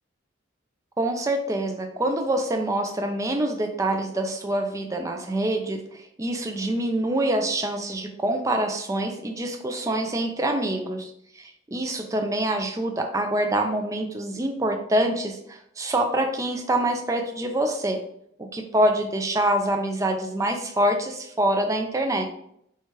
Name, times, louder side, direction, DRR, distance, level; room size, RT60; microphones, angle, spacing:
voice 1, 1.0-11.1 11.4-18.0 18.4-22.3, right 1 dB, 15° right, 4 dB, 0.4 m, -25 dB
4.3 x 2.3 x 3.0 m, 0.73 s
head